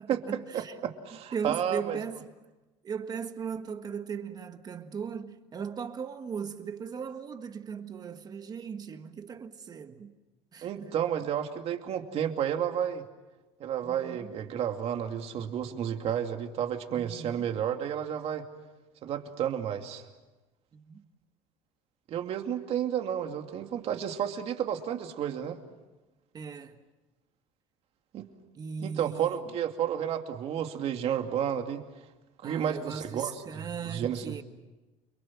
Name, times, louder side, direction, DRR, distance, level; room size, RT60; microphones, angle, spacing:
voice 1, 0.0-0.8 1.3-2.3 2.8-10.1 10.5-11.0 13.8-14.3 16.9-17.5 20.7-21.0 26.3-26.8 28.5-29.5 32.4-34.4, right 6 dB, 30° right, 1.6 m, -38 dB
voice 2, 0.5-2.0 10.6-13.0 13.6-18.5 19.0-20.0 22.1-25.6 28.1-28.3 28.8-31.8 32.4-34.4, right 9 dB, 45° right, 2.5 m, -31 dB
29.5 x 23.5 x 7.5 m
cardioid pair, 135°, 14 cm